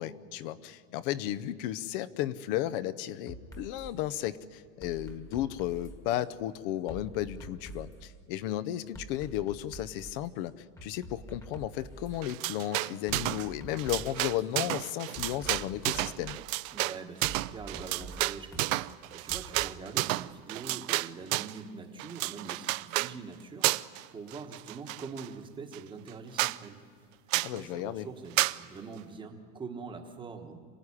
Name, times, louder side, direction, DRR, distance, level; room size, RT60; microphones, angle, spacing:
voice 1, 0.0-10.5 10.8-16.4 27.4-28.1, left 13 dB, 35° left, 16 dB, 0.6 m, -34 dB
sound 1, 3.3-3.9 4.8-6.3 6.9-8.1 8.9-10.3 10.8-12.2 13.1-14.5 15.2-16.3 17.2-19.7, right 1 dB, 5° left, 1.4 m, -46 dB
sound 2, 12.2-13.5 13.7-21.6 22.0-23.1 23.6-24.0 24.3-25.3 25.7-25.8 26.1-26.2 26.4-26.6 27.3-27.6 28.4-28.6, right 20 dB, 60° right, 0.6 m, -31 dB
voice 2, 16.7-18.8 19.1-26.8 27.3-30.6, right 4 dB, 10° right, 4 dB, 1.2 m, -44 dB
27.0 x 17.5 x 9.8 m, 2.2 s
supercardioid pair, 175°, 47 cm